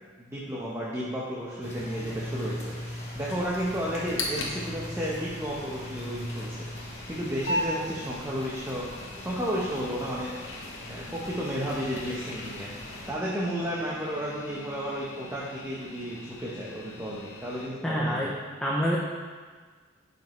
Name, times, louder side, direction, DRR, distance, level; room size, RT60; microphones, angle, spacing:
voice 1, 0.2-8.9 9.2-10.3 10.9-18.3, equal, 15° right, -6 dB, 1.0 m, -33 dB
sound 1, 1.6-13.1, left 1 dB, 35° left, 1.4 m, -40 dB
sound 2, 3.9-17.7, left 1 dB, 70° left, 1.2 m, -39 dB
voice 2, 17.8-18.3 18.6-19.0, equal, 5° left, -5 dB, 0.7 m, -26 dB
11.5 x 5.3 x 3.2 m, 1.5 s
head